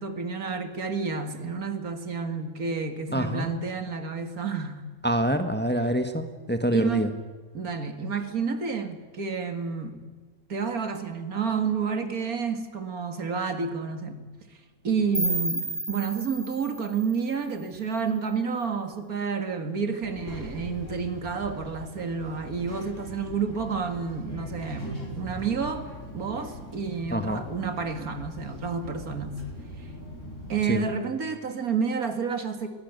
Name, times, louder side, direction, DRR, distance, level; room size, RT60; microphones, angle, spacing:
voice 1, 0.0-4.8 6.7-7.1 7.5-10.0 10.5-14.2 14.8-25.9 26.1-29.4 29.8-29.9 30.5-32.7, right 5 dB, 85° right, 7 dB, 2.5 m, -30 dB
voice 2, 3.1-3.5 5.0-7.1 27.1-27.4 30.7-30.8, equal, 10° left, 7 dB, 1.3 m, -26 dB
sound 1, 15.1-18.1, right 1 dB, 30° right, 5.5 m, -32 dB
Child speech kid speaking, 20.0-30.8, equal, 60° left, 5.7 m, -41 dB
22.0 x 17.5 x 9.4 m, 1.4 s
omnidirectional pair, 1.5 m